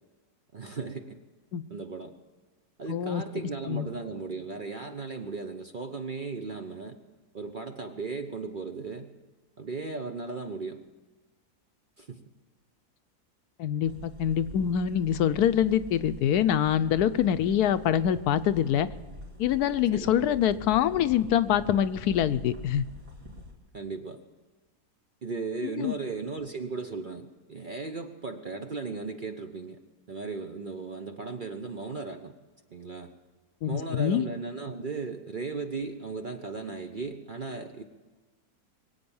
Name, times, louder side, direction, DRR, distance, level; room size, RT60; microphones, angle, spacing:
voice 1, 0.5-1.2 1.7-2.1 2.8-7.0 7.3-9.1 9.6-10.8 12.0-12.2 19.9-20.3 23.7-24.2 25.2-29.8 30.1-32.3 32.7-33.1 33.7-37.8, right 4 dB, 45° right, 6 dB, 0.7 m, -36 dB
voice 2, 2.9-3.2 3.7-3.9 13.6-18.9 19.4-22.8 25.6-25.9 33.6-34.2, left 10 dB, 80° left, 12 dB, 1.2 m, -25 dB
sound 1, 13.8-23.5, left 1 dB, 80° right, 3.8 m, -46 dB
22.5 x 8.8 x 7.1 m, 1.3 s
omnidirectional pair, 1.7 m